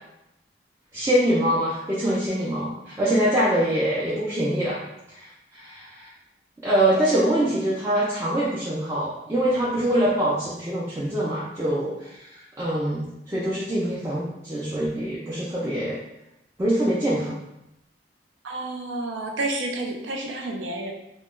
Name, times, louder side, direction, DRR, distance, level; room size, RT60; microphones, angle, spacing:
voice 1, 0.9-4.8 5.1-6.1 6.6-16.0 16.6-17.4, right 1 dB, 15° right, -8 dB, 0.4 m, -24 dB
voice 2, 18.4-20.9, right 2 dB, 90° right, 2 dB, 0.4 m, -30 dB
2.2 x 2.1 x 3.0 m, 0.87 s
head